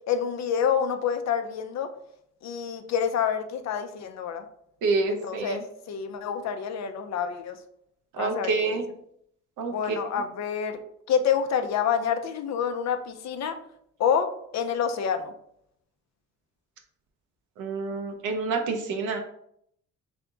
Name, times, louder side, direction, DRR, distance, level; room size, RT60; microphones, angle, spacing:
voice 1, 0.1-1.9 2.4-4.4 5.1-5.6 5.9-7.6 8.2-8.8 9.7-10.8 11.1-13.6 14.0-15.3, left 7 dB, 60° left, 7 dB, 0.6 m, -27 dB
voice 2, 4.8-5.6 8.2-8.8 9.6-9.7 17.6-19.2, right 4 dB, 90° right, 4 dB, 0.9 m, -27 dB
3.5 x 3.5 x 3.8 m, 0.71 s
cardioid pair, 90°, 30 cm